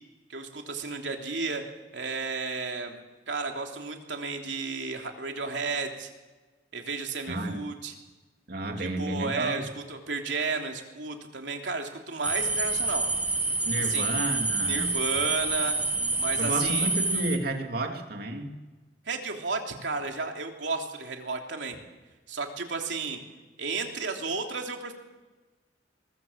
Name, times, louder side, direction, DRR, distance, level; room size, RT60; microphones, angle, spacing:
voice 1, 0.3-1.6 1.9-3.0 3.3-6.1 6.7-7.9 8.8-13.1 13.8-14.1 14.7-15.8 16.2-16.9 17.1-17.2 19.1-21.8 22.3-23.2 23.6-24.9, right 4 dB, 85° right, 3 dB, 3.2 m, -33 dB
voice 2, 7.3-7.6 8.5-9.6 13.6-14.9 16.4-18.5, right 1 dB, 55° right, 3 dB, 3.0 m, -31 dB
sound 1, 12.2-17.4, right 3 dB, 10° right, 1.7 m, -28 dB
23.0 x 20.5 x 7.4 m, 1.2 s
head